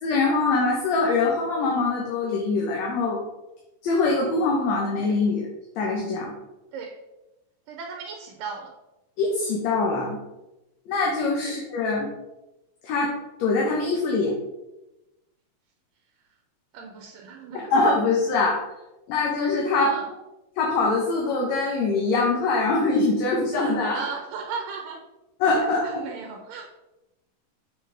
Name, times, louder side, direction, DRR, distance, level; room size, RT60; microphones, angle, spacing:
voice 1, 0.0-3.2 3.8-5.5 5.8-6.3 9.2-10.2 10.9-12.1 12.8-14.4 17.7-18.6 19.1-19.9 20.6-24.0 25.4-25.8, left 3 dB, 65° left, -2 dB, 2.0 m, -23 dB
voice 2, 7.7-8.7 11.5-11.6 16.7-17.7 19.7-20.1 23.9-25.0 25.6-26.7, right 5 dB, 85° right, 2 dB, 2.4 m, -36 dB
6.4 x 6.4 x 3.4 m, 0.98 s
omnidirectional pair, 3.8 m